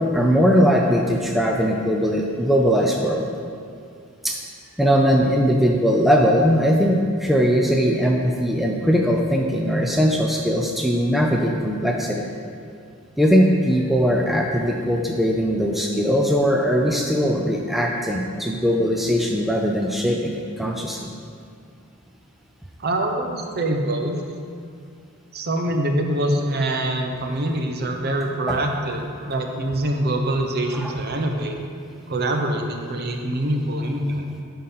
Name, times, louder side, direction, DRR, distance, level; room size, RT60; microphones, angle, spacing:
voice 1, 0.0-3.3 4.2-4.4 4.8-12.3 13.2-21.1 28.5-28.6 30.7-30.9, equal, ahead, 0 dB, 0.4 m, -20 dB
voice 2, 22.8-24.2 25.3-31.6 32.1-34.2, right 1 dB, 50° right, 3 dB, 0.8 m, -24 dB
10.5 x 3.9 x 5.6 m, 2.3 s
head